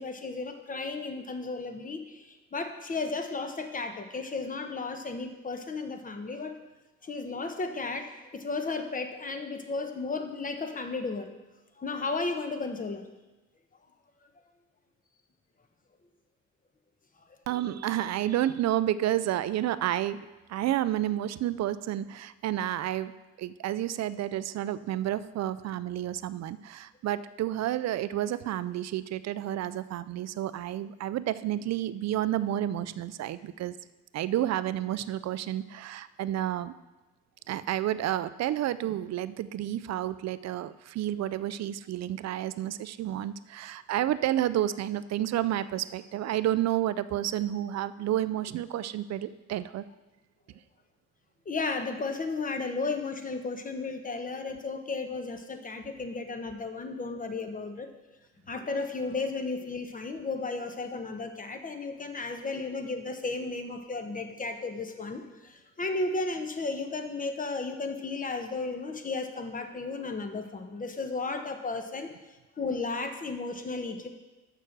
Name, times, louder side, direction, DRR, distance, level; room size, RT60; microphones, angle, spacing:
voice 1, 0.0-6.6 7.0-11.3 11.8-13.0 51.5-57.9 58.5-72.1 72.6-74.1, left 3 dB, 25° left, 6 dB, 1.0 m, -34 dB
voice 2, 17.5-23.1 23.4-33.8 34.1-36.7 37.5-49.8, right 12 dB, 60° right, 15 dB, 0.5 m, -30 dB
6.7 x 6.1 x 6.5 m, 1.1 s
cardioid pair, 90°, 30 cm